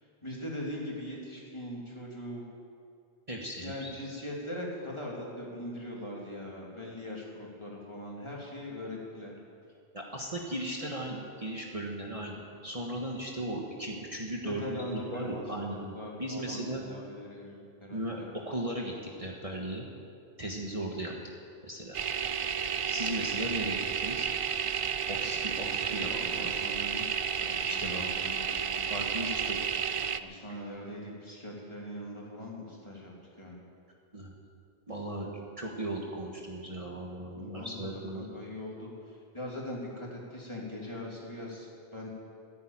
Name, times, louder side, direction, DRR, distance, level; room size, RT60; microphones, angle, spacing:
voice 1, 0.2-2.4 3.6-9.3 10.8-10.9 14.4-18.3 25.6-27.1 27.4-28.8 30.2-33.6 37.3-37.9 38.1-42.1, left 1 dB, 25° left, -3 dB, 3.1 m, -41 dB
voice 2, 3.3-3.9 9.9-16.8 17.9-18.9 19.2-19.8 20.4-21.1 21.6-22.0 22.8-24.3 25.1-26.5 27.6-28.0 28.9-29.7 34.1-34.3 34.9-35.3 35.6-38.3, right 1 dB, 35° right, -1 dB, 1.5 m, -37 dB
sound 1, 21.9-30.2, right 7 dB, 50° right, 0.4 m, -32 dB
14.0 x 10.5 x 8.9 m, 2.4 s
omnidirectional pair, 1.1 m